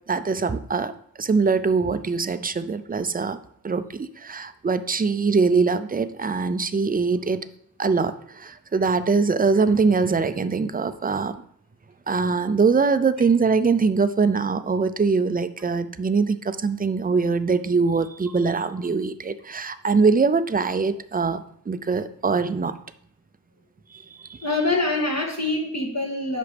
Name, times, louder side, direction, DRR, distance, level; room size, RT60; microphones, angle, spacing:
voice 1, 0.1-0.9 1.2-3.4 3.6-7.5 7.8-11.4 12.1-22.8 23.9-24.4, right 4 dB, 25° right, 12 dB, 0.5 m, -23 dB
voice 2, 24.4-26.4, left 2 dB, 50° left, -2 dB, 1.6 m, -25 dB
8.1 x 5.9 x 3.4 m, 0.68 s
wide cardioid pair, 65°, 34 cm